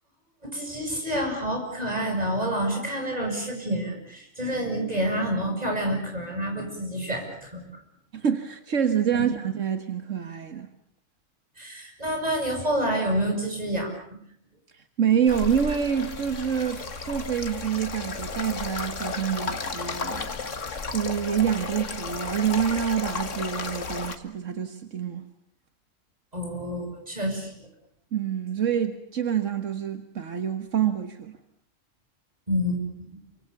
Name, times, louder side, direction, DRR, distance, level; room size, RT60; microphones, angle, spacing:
voice 1, 0.4-7.6 9.1-9.3 11.6-13.9 26.3-27.5 32.5-33.1, equal, 30° right, 8.0 m, -28 dB
voice 2, 8.1-10.7 14.7-20.3 20.9-25.2 28.1-31.4, right 8 dB, 75° right, 1.8 m, -27 dB
sound 1, 15.3-24.2, left 4 dB, 75° left, 2.1 m, -33 dB
28.5 x 25.0 x 7.0 m
omnidirectional pair, 1.3 m